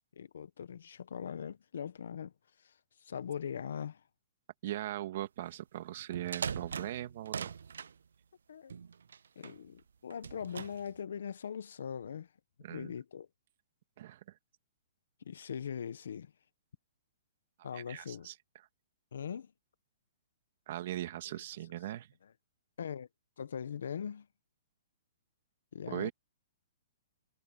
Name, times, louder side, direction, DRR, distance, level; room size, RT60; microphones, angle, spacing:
voice 1, 0.1-2.3 2.6-2.7 3.0-4.0 8.5-8.7 9.4-12.3 12.7-13.3 15.2-16.3 17.6-18.3 19.1-19.5 22.8-23.1 23.4-24.3 25.7-26.1, left 7 dB, 80° left, 1.2 m, -41 dB
voice 2, 4.6-7.5 12.6-13.0 14.0-14.4 17.6-18.4 20.7-22.1 25.9-26.1, right 13 dB, 50° right, 2.3 m, -40 dB
sound 1, 6.0-7.9 8.7-9.6 10.1-10.9, right 6 dB, 85° right, 0.4 m, -41 dB
hypercardioid pair, 155°, 0 cm